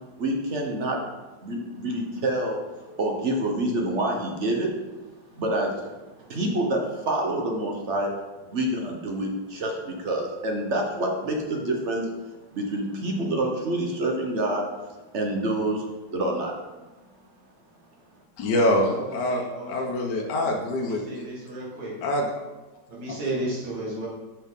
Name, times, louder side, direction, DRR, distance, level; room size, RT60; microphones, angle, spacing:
voice 1, 0.2-1.0 1.4-2.6 3.0-4.7 5.3-5.7 6.2-8.1 8.5-12.1 12.5-14.7 15.1-15.8 16.1-16.5, right 1 dB, 50° right, 1 dB, 1.0 m, -27 dB
voice 2, 18.4-21.0 22.0-22.3, left 1 dB, 75° left, 0 dB, 1.4 m, -25 dB
voice 3, 18.9-20.0 21.1-21.9 22.9-24.1, right 1 dB, 80° right, -5 dB, 2.3 m, -33 dB
6.0 x 5.7 x 3.6 m, 1.1 s
omnidirectional pair, 1.9 m